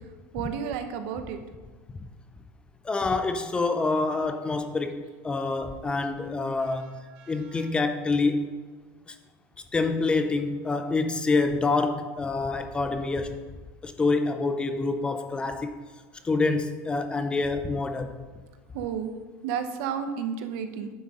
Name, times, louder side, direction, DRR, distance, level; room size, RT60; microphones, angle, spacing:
voice 1, 0.3-1.4 6.7-6.8 7.1-7.7 18.7-19.1 19.4-20.9, right 7 dB, 60° right, 8 dB, 0.9 m, -32 dB
voice 2, 2.8-7.0 7.3-8.5 9.1-9.2 9.7-13.4 13.8-15.8 16.2-18.1, left 3 dB, 15° left, 8 dB, 0.5 m, -27 dB
9.4 x 7.6 x 3.7 m, 1.4 s
supercardioid pair, 155°, 7 cm